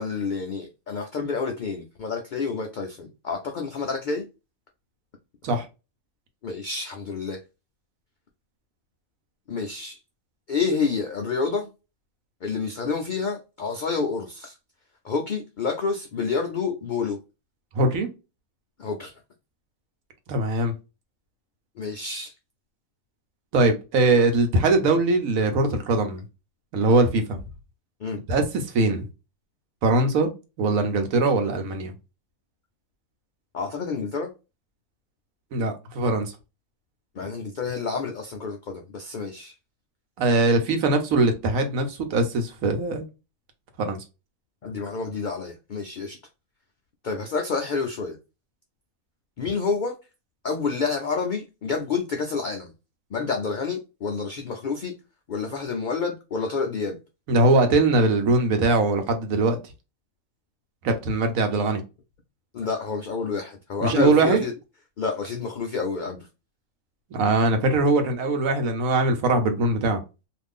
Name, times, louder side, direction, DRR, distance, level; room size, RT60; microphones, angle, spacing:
voice 1, 0.0-4.2 6.4-7.4 9.5-10.0 10.5-11.7 12.4-14.5 15.0-17.2 18.8-19.1 21.8-22.3 28.0-28.2 33.5-34.3 37.1-39.5 44.6-46.2 47.0-48.2 49.4-50.0 50.4-52.7 53.1-54.9 55.3-57.0 62.5-64.5 65.0-66.3, left 5 dB, 80° left, 0.4 m, -29 dB
voice 2, 17.8-18.1 20.3-20.7 23.5-26.2 26.7-27.4 28.3-29.1 29.8-30.3 30.6-31.9 35.5-36.3 40.2-43.1 43.8-44.0 57.3-59.6 60.8-61.8 63.8-64.4 67.1-70.0, right 2 dB, 80° right, 1.1 m, -21 dB
2.5 x 2.5 x 3.4 m
omnidirectional pair, 1.4 m